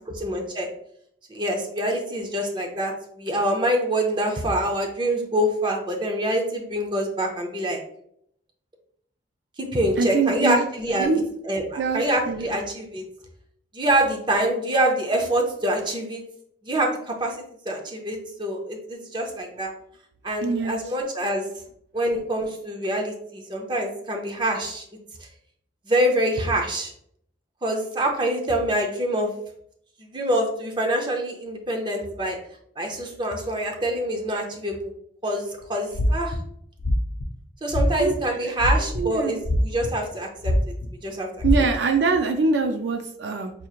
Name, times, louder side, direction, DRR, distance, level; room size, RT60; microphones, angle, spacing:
voice 1, 0.2-0.7 1.3-7.8 9.6-11.1 11.4-13.0 13.7-16.2 16.6-19.7 20.2-21.5 21.9-24.8 25.9-26.9 27.6-29.3 30.0-32.4 32.8-34.9 35.2-36.4 37.6-40.5 41.0-41.3, right 1 dB, 25° right, 2 dB, 0.6 m, -25 dB
voice 2, 10.0-10.6 11.0-11.2 11.8-12.5 20.4-20.8 38.0-38.1 38.8-39.4 41.4-43.5, right 4 dB, 70° right, 5 dB, 0.4 m, -23 dB
sound 1, 35.9-36.4 36.8-37.2 37.7-38.1 38.6-39.0 39.4-40.1 40.4-40.9 41.4-41.5, left 1 dB, 60° left, 0.4 m, -22 dB
4.8 x 3.0 x 2.4 m, 0.70 s
head